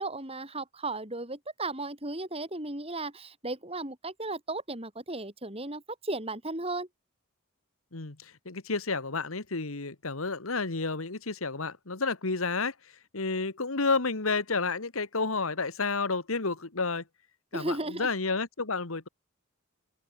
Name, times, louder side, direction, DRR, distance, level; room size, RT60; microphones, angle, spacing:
voice 1, 0.0-6.9 17.5-18.1, right 2 dB, 30° right, 5.6 m, -35 dB
voice 2, 7.9-12.7 13.1-17.0 17.5-19.1, left 4 dB, 85° left, 1.8 m, -30 dB
head